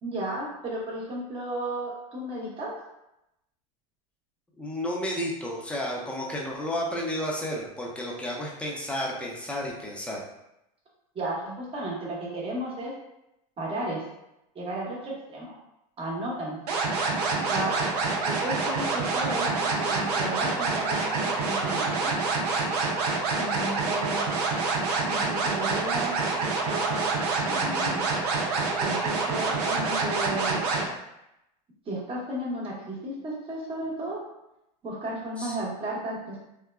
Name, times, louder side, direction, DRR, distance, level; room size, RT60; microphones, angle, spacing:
voice 1, 0.0-2.7 11.1-12.9 13.6-14.0 14.5-15.5 16.0-16.8 17.5-17.8 18.2-22.1 23.3-24.2 25.1-27.1 27.4-28.1 28.8-30.6 31.9-34.2 34.8-36.4, right 1 dB, 30° right, -4 dB, 1.0 m, -34 dB
voice 2, 4.6-10.2 35.4-35.6, equal, 5° left, -3 dB, 0.6 m, -32 dB
sound 1, 16.7-30.9, right 3 dB, 85° right, 0.6 m, -27 dB
3.4 x 2.1 x 2.3 m, 0.86 s
supercardioid pair, 110°, 19 cm